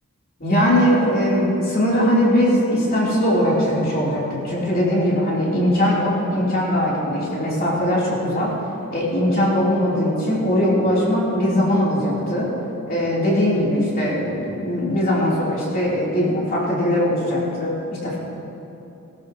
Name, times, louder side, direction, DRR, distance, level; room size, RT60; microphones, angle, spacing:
voice 1, 0.4-8.5 8.9-12.5 12.9-17.7 18.0-18.2, equal, 45° left, -7 dB, 3.5 m, -20 dB
19.5 x 12.5 x 3.1 m, 3.0 s
head